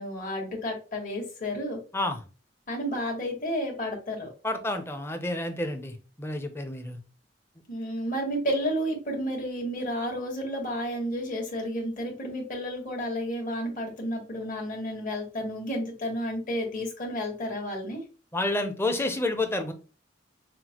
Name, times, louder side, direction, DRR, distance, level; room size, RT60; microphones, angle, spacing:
voice 1, 0.0-1.8 2.7-4.3 7.7-18.0, equal, 50° left, -1 dB, 1.6 m, -31 dB
voice 2, 1.9-2.2 4.4-7.0 18.3-19.7, left 2 dB, 15° left, 6 dB, 0.6 m, -29 dB
6.0 x 2.1 x 2.9 m, 0.34 s
head